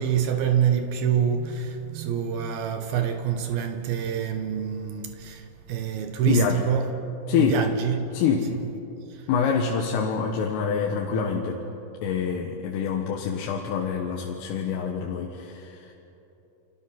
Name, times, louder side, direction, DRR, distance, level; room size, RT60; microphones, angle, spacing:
voice 1, 0.0-6.9 7.4-8.1 8.5-8.6 9.1-9.2, right 8 dB, 75° right, 2.3 m, -26 dB
voice 2, 6.3-6.6 7.3-7.6 8.1-8.5 9.3-11.6 12.0-15.9, left 6 dB, 90° left, 4.1 m, -26 dB
29.5 x 25.5 x 5.8 m
omnidirectional pair, 5.7 m